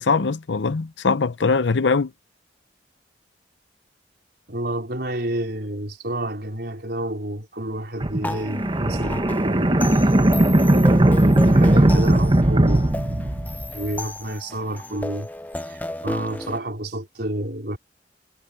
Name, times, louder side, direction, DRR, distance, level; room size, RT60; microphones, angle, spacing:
voice 1, 0.0-2.1, left 4 dB, 85° left, 0.7 m, -21 dB
voice 2, 4.5-10.1 10.7-12.9 13.7-15.3 15.7-17.8, right 1 dB, 60° right, 4.8 m, -30 dB
sound 1, 8.0-13.9, right 1 dB, 30° right, 1.1 m, -18 dB
sound 2, 8.2-16.6, left 1 dB, 10° left, 0.8 m, -34 dB
head